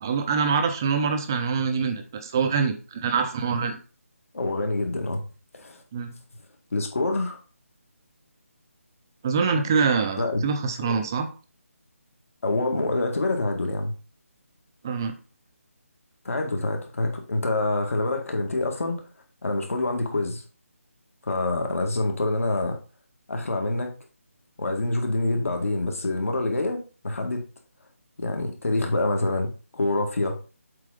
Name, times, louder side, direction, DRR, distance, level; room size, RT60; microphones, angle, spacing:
voice 1, 0.0-3.8 5.9-6.1 9.2-11.3 14.8-15.1, right 5 dB, 15° right, 7 dB, 0.5 m, -25 dB
voice 2, 4.3-5.2 5.5-5.8 6.7-7.4 10.2-10.4 10.8-11.0 12.4-13.9 16.2-19.0 19.4-20.4 21.2-22.8 23.3-24.0 24.6-27.5 28.2-30.4, left 2 dB, 70° left, 3 dB, 2.1 m, -26 dB
7.6 x 3.7 x 5.0 m, 0.35 s
figure-of-eight pair, 175°, 8 cm